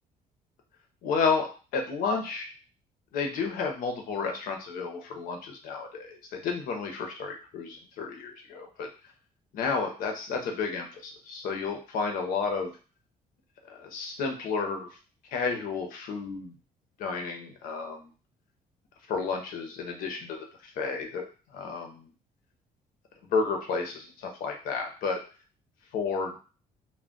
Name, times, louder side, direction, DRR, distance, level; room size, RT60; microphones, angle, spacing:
voice 1, 1.0-2.5 3.1-8.9 9.5-12.7 13.7-14.9 15.3-16.5 17.0-18.1 19.1-20.5 20.8-21.3 21.5-22.1 23.3-25.2 25.9-26.4, left 5 dB, 75° left, 3 dB, 0.7 m, -31 dB
2.2 x 2.1 x 3.7 m, 0.36 s
cardioid pair, 170°, 15 cm